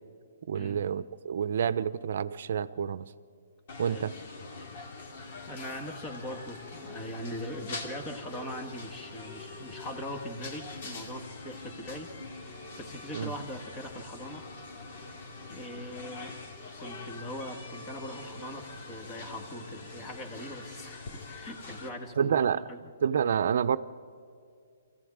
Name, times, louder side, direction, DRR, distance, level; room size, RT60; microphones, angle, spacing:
voice 1, 0.5-3.1 3.8-4.1 13.1-13.3 22.2-22.7 23.0-23.8, right 8 dB, 60° right, 15 dB, 0.7 m, -28 dB
sound 1, 3.7-21.9, left 3 dB, 50° left, 2.7 m, -44 dB
voice 2, 5.5-15.1 15.5-16.4 16.8-22.9, equal, 20° left, 5 dB, 2.1 m, -41 dB
24.0 x 15.5 x 8.8 m, 2.3 s
hypercardioid pair, 145°, 0 cm